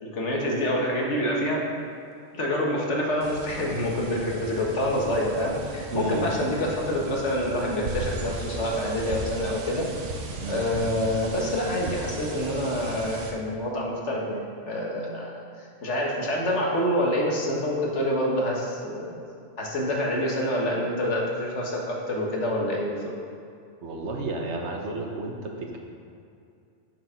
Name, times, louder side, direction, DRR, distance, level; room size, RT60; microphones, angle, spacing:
voice 1, 0.0-1.6 2.3-9.9 10.5-19.1 19.6-23.1, equal, 75° left, -2 dB, 1.7 m, -27 dB
sound 1, 3.2-13.3, right 1 dB, 90° right, 1.3 m, -37 dB
voice 2, 5.9-6.3 10.4-10.6 23.8-25.8, right 2 dB, 70° right, 1 dB, 1.3 m, -32 dB
7.4 x 5.9 x 5.8 m, 2.5 s
omnidirectional pair, 1.2 m